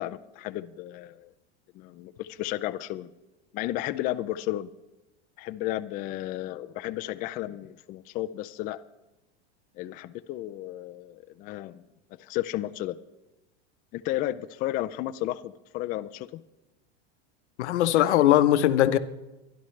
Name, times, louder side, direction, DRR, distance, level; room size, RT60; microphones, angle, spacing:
voice 1, 0.0-1.3 1.7-3.1 3.5-4.7 5.4-8.8 9.8-11.8 12.2-13.0 13.9-16.4, left 14 dB, 25° left, 0.3 m, -33 dB
voice 2, 17.6-19.0, left 12 dB, 85° left, 0.9 m, -20 dB
23.0 x 11.0 x 3.2 m
supercardioid pair, 140°, 33 cm